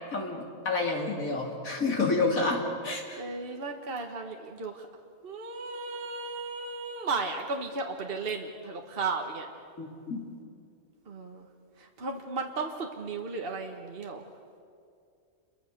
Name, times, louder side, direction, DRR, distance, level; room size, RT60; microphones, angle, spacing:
voice 1, 0.1-3.2 9.8-10.2, left 3 dB, 85° left, 1 dB, 3.5 m, -29 dB
voice 2, 3.2-4.9 5.2-9.4 11.1-11.5 11.8-14.2, right 4 dB, 45° right, 2 dB, 1.6 m, -35 dB
28.5 x 23.0 x 6.7 m, 2.4 s
omnidirectional pair, 1.4 m